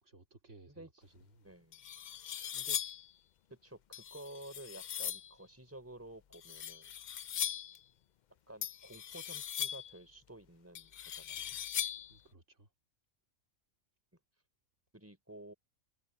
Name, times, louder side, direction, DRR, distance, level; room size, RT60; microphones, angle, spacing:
voice 1, 0.0-1.6 11.3-11.8 12.1-12.7, right 3 dB, 65° right, 3.3 m, -60 dB
sound 1, 1.2-1.3 1.7-3.1 3.9-5.3 6.3-7.8 8.6-10.0 10.7-12.2, left 10 dB, 75° left, 0.4 m, -40 dB
voice 2, 1.4-1.8 2.5-2.8 3.5-6.9 8.5-11.5 14.9-15.5, right 1 dB, 10° right, 4.5 m, -52 dB
omnidirectional pair, 1.4 m